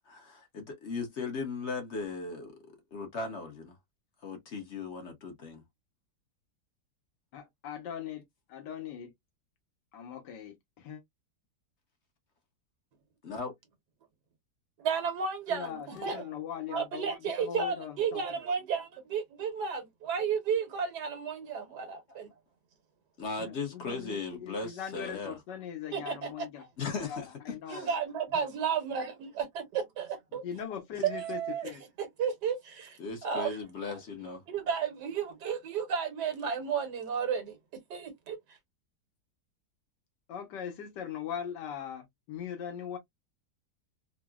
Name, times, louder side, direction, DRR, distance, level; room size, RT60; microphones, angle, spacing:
voice 1, 0.1-2.6 2.9-3.7 4.2-5.6 13.3-13.5 22.1-22.2 23.2-25.3 26.8-27.3 27.7-27.9 33.0-34.4, left 4 dB, 50° left, 1.0 m, -37 dB
voice 2, 7.3-8.2 8.5-9.1 9.9-11.0 15.5-18.2 23.4-26.6 27.0-27.9 28.3-28.5 30.4-31.8 40.3-43.0, left 8 dB, 90° left, 1.6 m, -40 dB
voice 3, 14.8-16.3 16.7-22.3 25.9-26.7 27.7-30.4 31.0-31.7 32.0-34.0 34.5-37.6 37.9-38.4, right 6 dB, 75° right, 1.5 m, -33 dB
3.8 x 2.0 x 2.2 m
omnidirectional pair, 1.8 m